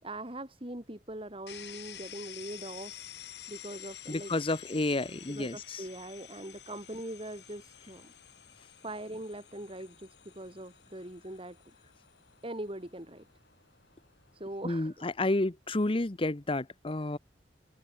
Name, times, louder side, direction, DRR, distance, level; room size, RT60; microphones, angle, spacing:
voice 1, 0.0-3.1 3.5-4.3 5.3-8.1 8.8-11.6 12.4-13.3 14.3-15.0, right 1 dB, 30° right, 4.4 m, -42 dB
sound 1, 1.5-15.2, left 11 dB, 70° left, 6.5 m, -50 dB
voice 2, 4.1-5.8 14.6-17.2, left 2 dB, 30° left, 0.9 m, -30 dB
open air
head